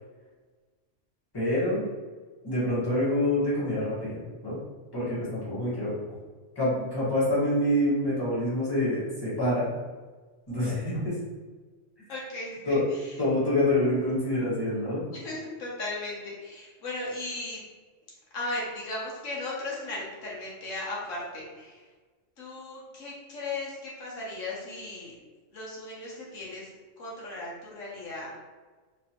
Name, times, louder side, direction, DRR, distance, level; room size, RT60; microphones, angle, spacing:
voice 1, 1.3-1.8 2.4-4.6 4.9-6.0 6.5-9.7 10.5-11.2 12.6-12.9 13.2-15.0, left 1 dB, 20° left, -10 dB, 1.4 m, -26 dB
voice 2, 12.1-13.2 15.1-17.6 18.3-21.8 22.4-25.2 25.5-26.7 27.0-28.3, left 2 dB, 80° left, -5 dB, 1.3 m, -36 dB
3.3 x 3.1 x 2.8 m, 1.4 s
omnidirectional pair, 1.3 m